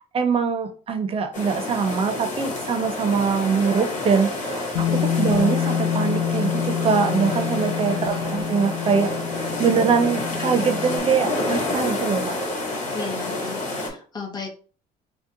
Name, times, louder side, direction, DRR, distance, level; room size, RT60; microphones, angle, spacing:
voice 1, 0.1-4.9 5.1-12.4, right 6 dB, 35° right, 7 dB, 0.5 m, -23 dB
sound 1, 1.3-13.9, left 2 dB, 45° left, 1.2 m, -29 dB
Bass guitar, 4.7-11.0, left 9 dB, 85° left, 0.4 m, -27 dB
voice 2, 4.9-5.2 7.9-8.3 12.9-14.5, left 5 dB, 25° left, 1 dB, 0.9 m, -35 dB
2.8 x 2.1 x 3.7 m, 0.40 s
cardioid pair, 110°, 17 cm